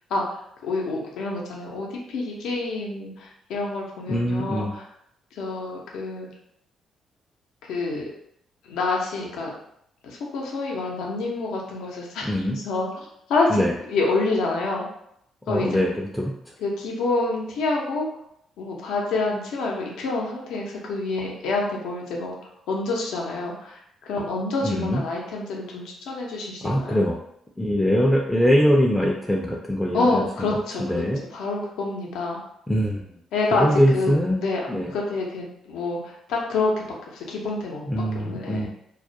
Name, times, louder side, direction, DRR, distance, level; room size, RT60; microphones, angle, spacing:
voice 1, 0.6-4.7 5.3-6.3 7.6-8.0 8.6-9.5 10.0-13.6 13.9-14.9 15.5-15.7 16.6-18.1 18.6-22.4 22.7-27.0 29.9-31.0 31.3-32.4 33.3-33.7 33.9-34.6 34.9-36.8 37.1-37.8 38.1-38.7, left 3 dB, 85° left, -1 dB, 0.6 m, -27 dB
voice 2, 4.1-4.7 12.2-12.6 13.5-13.7 15.5-16.3 24.6-25.0 26.6-27.2 27.6-31.2 32.7-33.2 33.5-34.4 34.7-34.9 37.9-38.7, equal, 5° left, -2 dB, 0.3 m, -22 dB
2.2 x 2.1 x 2.7 m, 0.75 s
cardioid pair, 90°, 0 cm